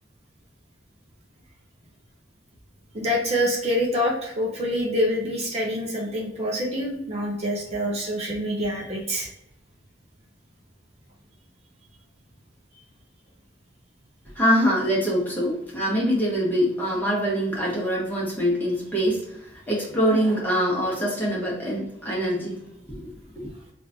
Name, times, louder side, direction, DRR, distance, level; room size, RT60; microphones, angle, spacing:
voice 1, 2.9-9.3, equal, 40° right, -1 dB, 0.7 m, -26 dB
voice 2, 14.3-22.6 22.9-23.5, equal, 10° left, -5 dB, 1.1 m, -24 dB
3.1 x 2.5 x 3.5 m, 0.78 s
head